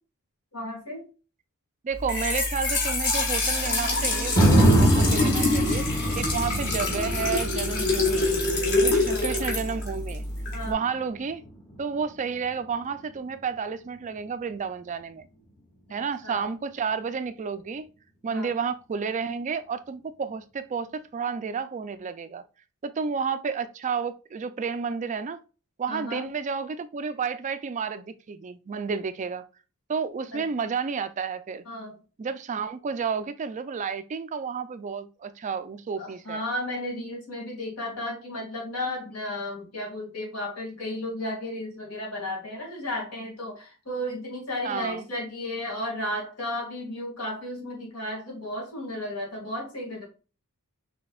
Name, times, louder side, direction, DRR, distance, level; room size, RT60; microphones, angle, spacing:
voice 1, 0.5-1.1 8.8-9.2 10.5-10.8 16.2-16.5 18.3-18.5 25.9-26.2 30.3-30.4 31.7-32.0 36.0-50.1, left 1 dB, 80° left, 2.3 m, -34 dB
voice 2, 1.8-5.9 6.1-8.3 8.8-10.2 10.7-11.4 11.8-15.3 15.9-17.9 18.2-22.4 22.8-25.4 25.8-29.4 29.9-31.6 32.2-36.4 44.6-45.1, right 5 dB, 35° right, 0.4 m, -31 dB
Trickle dribble / Fill (with liquid), 1.9-10.7, left 2 dB, 50° left, 1.6 m, -26 dB
sound 1, 4.4-12.5 13.0-13.1, right 1 dB, 15° left, 0.8 m, -25 dB
5.9 x 3.4 x 2.3 m
head